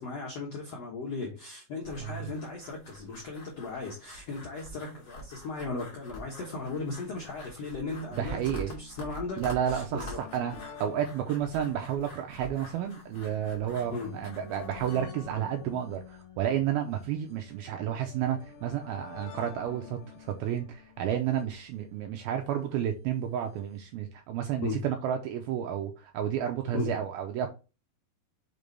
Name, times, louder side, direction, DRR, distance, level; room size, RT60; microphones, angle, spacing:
voice 1, 0.0-10.2 13.9-14.1 24.6-24.8 26.7-26.9, left 3 dB, 75° left, 1.4 m, -37 dB
sound 1, 1.8-15.0, equal, 30° left, 1.9 m, -47 dB
voice 2, 2.0-2.3 8.1-8.7 9.4-27.5, right 10 dB, 90° right, 2.2 m, -31 dB
sound 2, 6.1-6.2 6.4-6.5 7.4-22.6 23.6-23.7 23.8-23.9, left 7 dB, 55° left, 2.2 m, -50 dB
5.8 x 5.3 x 3.3 m
omnidirectional pair, 5.0 m